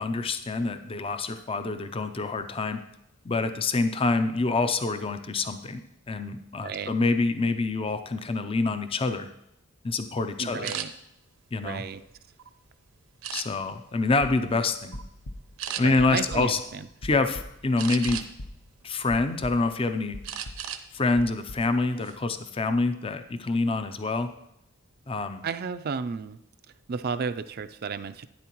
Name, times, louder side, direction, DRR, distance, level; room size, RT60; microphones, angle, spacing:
voice 1, 0.0-2.8 3.2-5.8 6.1-9.3 9.8-10.7 11.5-11.8 13.3-15.0 15.8-16.6 17.0-18.2 18.8-20.2 20.9-24.3 25.1-25.4, left 3 dB, 25° left, 9 dB, 0.5 m, -26 dB
voice 2, 6.6-6.9 10.4-10.9 11.6-12.0 15.8-16.9 25.4-26.4 26.9-28.3, right 5 dB, 45° right, 11 dB, 0.4 m, -33 dB
sound 1, 10.6-10.9 11.5-12.5 13.2-13.8 14.3-14.6 14.9-15.1 15.6-15.8 17.8-18.5 19.0-19.7 20.2-20.9 21.2-21.4 21.8-22.2, right 9 dB, 80° right, 0.7 m, -35 dB
sound 2, 14.2-18.8 19.1-19.8 20.1-20.7 21.2-21.7, left 1 dB, 60° left, 0.8 m, -41 dB
12.0 x 10.0 x 3.0 m, 0.81 s
head